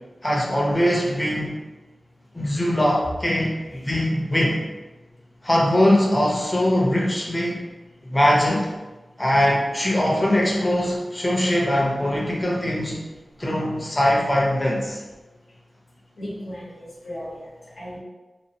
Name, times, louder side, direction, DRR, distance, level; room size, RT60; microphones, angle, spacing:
voice 1, 0.2-1.6 2.3-4.6 5.4-7.6 8.0-8.7 9.2-13.0 13.4-15.0, left 1 dB, 20° left, -3 dB, 0.7 m, -21 dB
voice 2, 16.2-18.0, equal, 80° left, -7 dB, 0.9 m, -36 dB
2.9 x 2.4 x 2.8 m, 1.2 s
wide cardioid pair, 75°, 0 cm